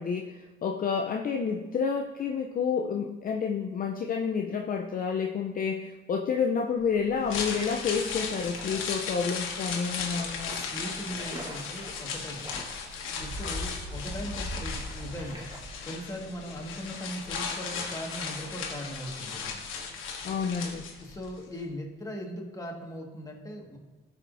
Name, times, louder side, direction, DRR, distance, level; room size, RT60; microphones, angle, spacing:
voice 1, 0.0-10.6 20.2-20.9, left 6 dB, 45° left, 2 dB, 0.5 m, -29 dB
sound 1, 7.1-21.3 21.6-21.7, left 5 dB, 85° left, 1.2 m, -36 dB
sound 2, 7.6-15.7, equal, 20° right, 1.7 m, -42 dB
voice 2, 10.5-12.5 13.2-15.5 15.8-19.6 21.0-23.8, equal, 15° left, 0 dB, 1.6 m, -39 dB
14.5 x 4.9 x 2.6 m, 1.2 s
cardioid pair, 90°, 20 cm